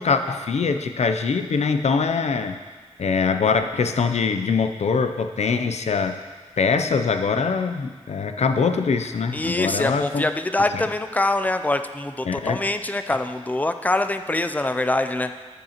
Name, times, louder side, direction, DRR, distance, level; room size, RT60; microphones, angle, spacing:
voice 1, 0.0-2.6 3.0-6.2 6.6-10.2 10.7-10.8 12.3-12.6, left 5 dB, 75° left, 8 dB, 0.5 m, -23 dB
voice 2, 9.3-15.3, left 2 dB, 15° left, 8 dB, 0.4 m, -24 dB
13.5 x 6.5 x 2.9 m, 1.5 s
wide cardioid pair, 105°, 12 cm